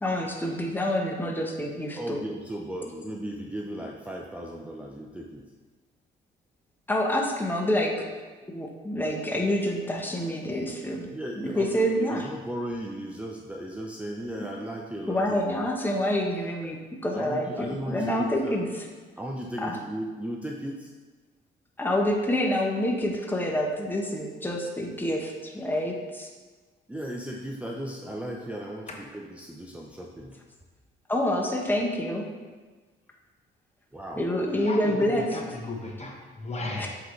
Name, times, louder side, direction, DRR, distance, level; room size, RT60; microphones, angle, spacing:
voice 1, 0.0-2.2 6.9-8.1 8.5-11.1 11.4-12.3 15.1-16.8 17.0-18.8 19.6-19.8 21.8-26.3 31.1-32.2 34.2-35.2 36.8-36.9, left 1 dB, 10° left, 0.9 m, -27 dB
voice 2, 1.9-5.5 11.1-15.4 17.1-18.6 19.2-20.9 26.9-30.4 33.9-34.2, right 1 dB, 5° right, 0.5 m, -36 dB
voice 3, 34.6-36.9, left 2 dB, 35° left, 1.1 m, -35 dB
7.7 x 3.8 x 3.2 m
cardioid pair, 90°, 20 cm